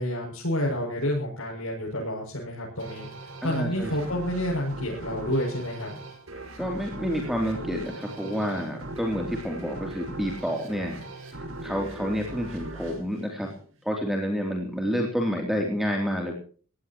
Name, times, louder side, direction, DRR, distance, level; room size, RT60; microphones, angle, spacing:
voice 1, 0.0-3.1 3.4-5.9, equal, 70° left, -3 dB, 7.1 m, -29 dB
sound 1, 2.8-14.0, right 2 dB, 65° right, 5.8 m, -39 dB
voice 2, 3.4-3.9 6.6-11.0 11.6-13.5 13.8-16.4, equal, ahead, 0 dB, 3.1 m, -29 dB
20.5 x 17.5 x 3.1 m, 0.41 s
head